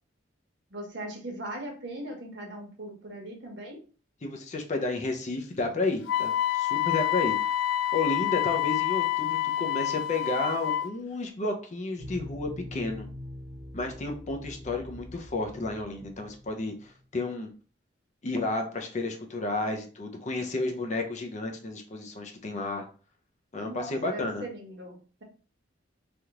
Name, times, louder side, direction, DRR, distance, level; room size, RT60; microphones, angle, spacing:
voice 1, 0.7-3.8 23.6-25.2, right 1 dB, 65° right, 0 dB, 1.0 m, -39 dB
voice 2, 4.2-7.3 7.9-13.1 13.7-16.7 17.1-17.5 18.2-22.8 23.5-24.4, left 2 dB, 40° left, 3 dB, 0.6 m, -32 dB
Wind instrument woodwind instrument, 6.1-10.9, left 13 dB, 85° left, 0.3 m, -27 dB
sound 1, 12.0-17.0, left 1 dB, 20° right, 0.7 m, -43 dB
3.4 x 2.4 x 2.8 m, 0.38 s
head